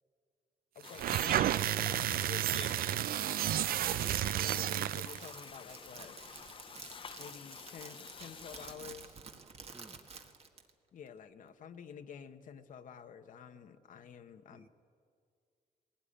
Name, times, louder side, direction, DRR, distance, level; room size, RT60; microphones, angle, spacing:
voice 1, 0.7-3.4 4.3-6.2 7.2-9.2 10.9-14.7, left 7 dB, 60° left, 8 dB, 1.0 m, -50 dB
sound 1, 0.8-8.8, left 7 dB, 35° left, 0.5 m, -49 dB
sound 2, 0.9-5.3, right 12 dB, 75° right, 0.4 m, -31 dB
Crackle, 3.6-10.7, right 5 dB, 40° right, 1.6 m, -51 dB
voice 2, 3.9-4.3 9.7-10.0 14.5-14.7, right 2 dB, 10° right, 9 dB, 0.5 m, -53 dB
20.0 x 17.0 x 10.0 m, 2.2 s
wide cardioid pair, 155°, 15 cm